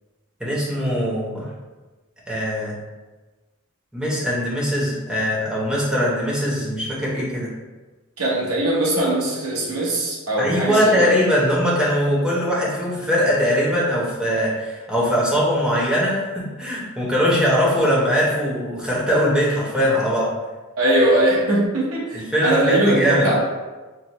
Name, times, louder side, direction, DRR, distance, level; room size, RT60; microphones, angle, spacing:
voice 1, 0.4-1.5 2.3-2.8 3.9-7.5 10.4-20.3 22.1-23.3, equal, 5° right, -6 dB, 0.9 m, -21 dB
voice 2, 8.2-11.1 20.8-23.4, right 1 dB, 85° right, -4 dB, 1.0 m, -20 dB
5.9 x 2.1 x 3.0 m, 1.2 s
head